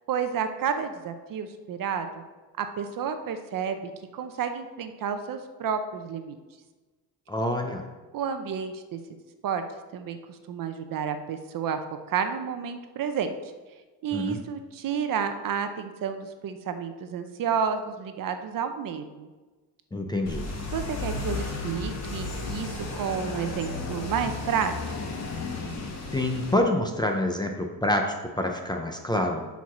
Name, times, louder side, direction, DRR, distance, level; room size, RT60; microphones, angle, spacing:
voice 1, 0.0-2.2 2.6-6.4 8.1-9.0 9.4-9.6 9.9-11.8 12.1-13.4 14.0-19.3 20.7-24.7, right 7 dB, 50° right, 8 dB, 0.7 m, -31 dB
voice 2, 7.3-7.8 14.1-14.4 19.9-20.4 26.1-29.5, left 1 dB, 10° left, 2 dB, 0.5 m, -27 dB
sound 1, 20.3-26.5, left 3 dB, 40° left, 1.4 m, -34 dB
8.3 x 4.7 x 5.9 m, 1.3 s
cardioid pair, 170°, 41 cm